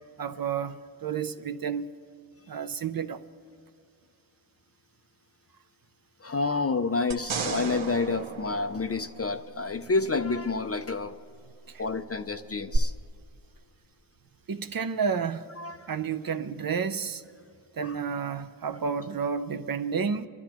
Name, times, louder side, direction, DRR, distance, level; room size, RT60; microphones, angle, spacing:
voice 1, 0.2-1.9 2.5-3.2 11.7-11.8 14.5-15.5 15.9-17.2 17.7-20.3, right 6 dB, 45° right, 0.5 m, -31 dB
voice 2, 6.2-11.2 11.8-12.9 15.6-15.9 17.8-18.0, left 3 dB, 30° left, 0.4 m, -29 dB
sound 1, 7.1-9.6 12.7-12.8, right 6 dB, 75° right, 0.9 m, -34 dB
26.0 x 12.0 x 2.9 m
wide cardioid pair, 105°, 48 cm